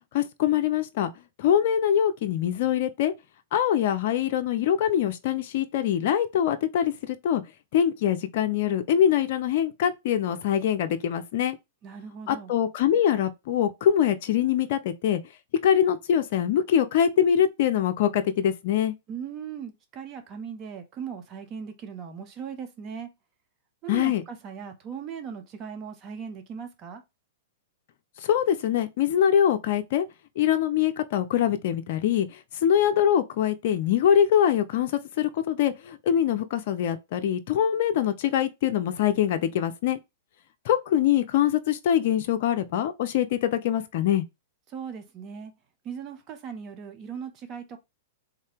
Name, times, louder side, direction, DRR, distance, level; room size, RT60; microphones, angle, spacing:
voice 1, 0.1-1.1 1.4-3.1 3.5-7.4 7.7-11.6 12.3-15.2 15.6-18.9 23.9-24.2 28.2-30.1 30.4-40.0 40.6-44.2, left 9 dB, 55° left, 0.4 m, -23 dB
voice 2, 11.8-12.5 19.1-23.1 23.8-27.0 44.7-45.5 45.8-47.8, right 7 dB, 35° right, 0.8 m, -38 dB
3.6 x 2.8 x 3.2 m
hypercardioid pair, 110°, 0 cm